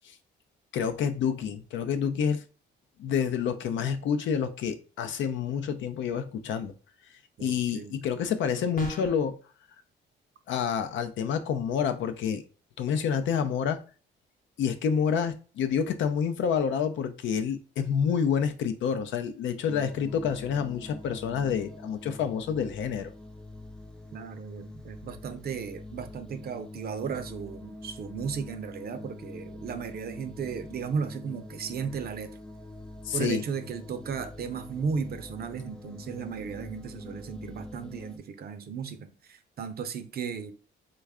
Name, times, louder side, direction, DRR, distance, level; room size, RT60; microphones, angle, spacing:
voice 1, 0.7-2.4 3.0-6.7 7.4-9.4 10.5-12.4 12.8-13.8 14.6-23.1 33.0-33.4, left 7 dB, 75° left, 0.5 m, -28 dB
voice 2, 7.4-8.0 24.1-32.4 33.1-39.0 39.3-40.5, right 6 dB, 50° right, 0.5 m, -35 dB
sound 1, 8.8-9.3, left 2 dB, 45° left, 0.9 m, -35 dB
sound 2, 19.7-38.2, left 2 dB, 5° left, 0.4 m, -44 dB
3.2 x 2.3 x 3.5 m
cardioid pair, 90°, 20 cm